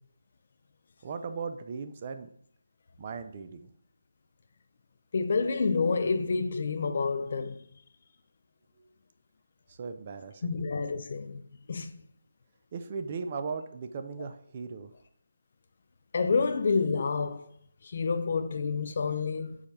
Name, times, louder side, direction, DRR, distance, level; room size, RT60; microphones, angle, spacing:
voice 1, 1.0-2.3 3.0-3.7 9.7-10.6 12.7-14.9, right 5 dB, 35° right, 0.3 m, -37 dB
voice 2, 5.1-7.6 10.4-11.4 11.7-11.9 16.1-17.4 17.8-19.6, left 4 dB, 45° left, 0.4 m, -28 dB
4.7 x 2.2 x 4.0 m
figure-of-eight pair, 155°, 0 cm